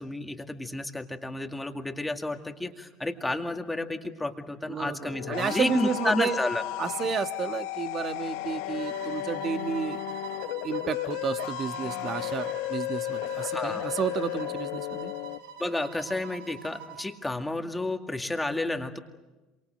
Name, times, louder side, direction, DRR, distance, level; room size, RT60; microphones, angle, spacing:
voice 1, 0.0-6.6 13.4-13.9 15.6-19.0, left 2 dB, 10° left, 5 dB, 2.2 m, -31 dB
voice 2, 4.7-6.4 6.8-10.0 10.6-15.1, right 7 dB, 40° right, 9 dB, 1.5 m, -31 dB
sound 1, 5.0-15.4, left 15 dB, 70° left, 0.9 m, -34 dB
sound 2, 8.8-17.2, right 8 dB, 70° right, 2.4 m, -43 dB
27.0 x 24.5 x 7.9 m, 1.2 s
hypercardioid pair, 75°, 0 cm